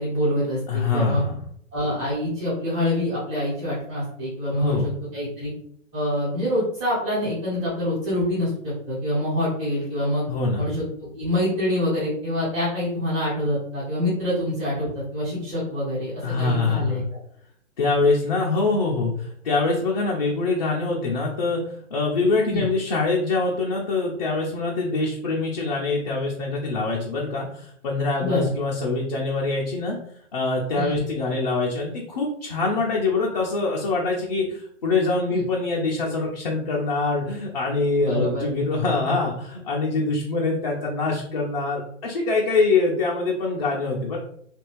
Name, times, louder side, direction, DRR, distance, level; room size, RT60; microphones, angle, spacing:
voice 1, 0.0-1.2 1.7-5.5 5.9-10.2 10.6-17.0 22.5-22.7 28.2-28.5 30.7-31.0 35.3-35.5 38.1-38.5, left 1 dB, 20° right, -11 dB, 1.3 m, -26 dB
voice 2, 0.7-1.4 4.5-4.9 10.3-10.7 16.2-17.0 17.8-30.0 30.3-44.2, left 3 dB, 35° left, -2 dB, 0.5 m, -24 dB
2.9 x 2.6 x 3.0 m, 0.66 s
figure-of-eight pair, 125°, 38 cm